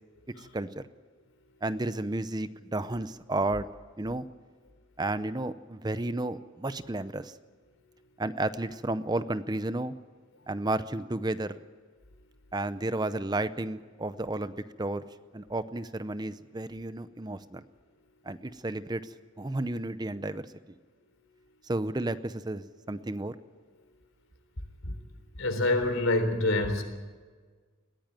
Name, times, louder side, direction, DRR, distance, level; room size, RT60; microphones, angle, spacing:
voice 1, 0.4-0.8 1.6-3.7 4.0-4.2 5.0-7.4 8.2-9.9 10.5-11.6 12.5-15.0 15.3-17.6 18.2-20.8 21.6-23.4, right 2 dB, 20° right, 13 dB, 0.6 m, -32 dB
voice 2, 25.3-26.8, left 2 dB, 85° left, 7 dB, 3.8 m, -26 dB
21.0 x 15.5 x 9.1 m, 1.5 s
head